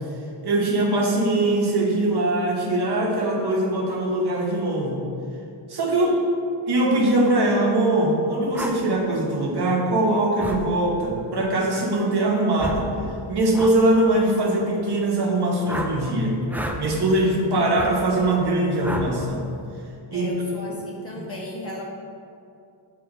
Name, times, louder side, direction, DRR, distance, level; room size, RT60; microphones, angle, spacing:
voice 1, 0.4-5.0 5.7-6.2 6.7-12.9 13.3-16.4 16.8-19.4 20.1-20.3, right 1 dB, 55° right, -1 dB, 1.2 m, -22 dB
sound 1, 8.5-8.8 10.4-10.6 12.6-12.9 13.5-13.8 15.7-15.9 16.5-16.8 17.8-17.9 18.8-19.1, right 1 dB, 5° right, 0.4 m, -30 dB
voice 2, 20.1-21.8, left 1 dB, 30° left, -3 dB, 1.4 m, -35 dB
6.6 x 3.1 x 5.2 m, 2.6 s
cardioid pair, 75°, 47 cm